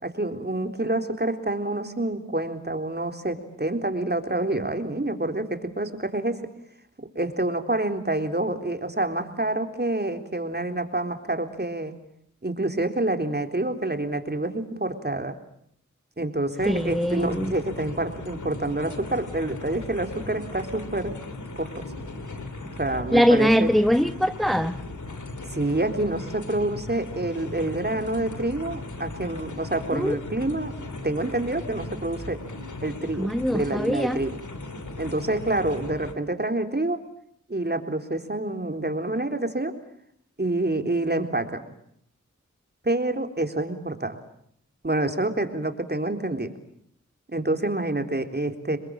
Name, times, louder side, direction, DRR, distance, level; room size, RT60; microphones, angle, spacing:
voice 1, 0.0-6.4 7.2-11.9 12.4-15.3 16.2-21.1 21.6-21.7 22.8-23.7 25.5-30.7 31.0-32.4 32.8-34.4 35.0-37.0 37.5-39.7 40.4-41.6 42.8-44.2 44.8-46.5 47.3-48.8, right 2 dB, 35° right, 6 dB, 3.8 m, -27 dB
sound 1, 16.6-36.1, left 2 dB, 80° left, 3.0 m, -37 dB
voice 2, 16.7-17.6 23.1-24.8 29.9-30.2 33.2-34.2, equal, ahead, 9 dB, 1.2 m, -22 dB
28.5 x 22.0 x 8.8 m, 0.68 s
wide cardioid pair, 45°, 30 cm